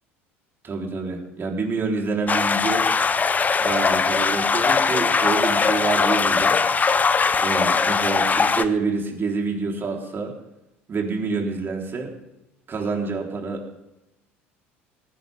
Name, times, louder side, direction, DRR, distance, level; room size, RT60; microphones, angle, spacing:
voice 1, 0.6-2.9 3.6-6.6 7.4-10.3 10.9-12.1 12.7-13.6, right 4 dB, 35° right, 1 dB, 4.1 m, -27 dB
sound 1, 2.3-8.7, left 5 dB, 25° left, 1.0 m, -20 dB
18.5 x 16.0 x 3.7 m, 0.94 s
hypercardioid pair, 70°, 6 cm